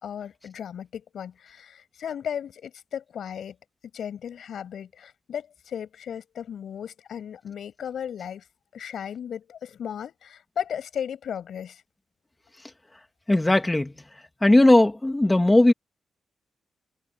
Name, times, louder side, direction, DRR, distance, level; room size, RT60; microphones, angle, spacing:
voice 1, 0.0-3.6 3.9-8.4 8.7-11.8, left 8 dB, 65° left, 7.9 m, -35 dB
voice 2, 13.3-13.9 14.4-15.7, left 1 dB, 10° left, 2.0 m, -18 dB
wide cardioid pair, 180°, 0 cm